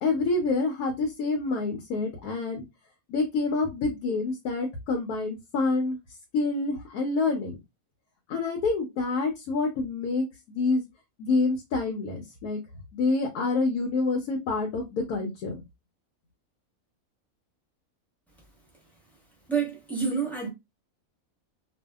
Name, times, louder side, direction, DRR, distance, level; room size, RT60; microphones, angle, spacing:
voice 1, 0.0-2.6 3.1-6.0 6.3-7.6 8.3-10.8 11.2-12.6 12.9-15.5, left 3 dB, 90° left, 1.1 m, -27 dB
voice 2, 19.5-20.5, right 6 dB, ahead, 0.9 m, -28 dB
2.6 x 2.3 x 2.2 m
omnidirectional pair, 1.5 m